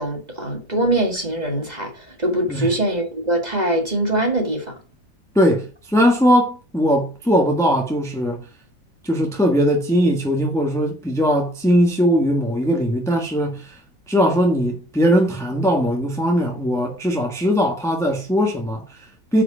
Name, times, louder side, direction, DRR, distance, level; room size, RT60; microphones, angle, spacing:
voice 1, 0.0-4.8, right 1 dB, 25° right, 2.0 m, -23 dB
voice 2, 5.3-8.4 9.0-13.8 14.1-19.4, equal, ahead, 1.4 m, -19 dB
9.5 x 4.9 x 5.0 m
omnidirectional pair, 1.8 m